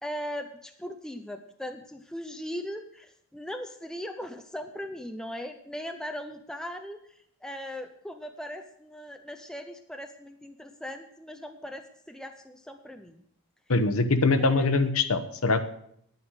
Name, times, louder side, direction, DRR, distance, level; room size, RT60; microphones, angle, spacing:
voice 1, 0.0-7.0 7.4-13.2 14.5-14.7, equal, 5° left, 6 dB, 0.6 m, -39 dB
voice 2, 13.7-15.7, left 3 dB, 70° left, 9 dB, 1.0 m, -23 dB
9.8 x 9.4 x 6.3 m, 0.69 s
head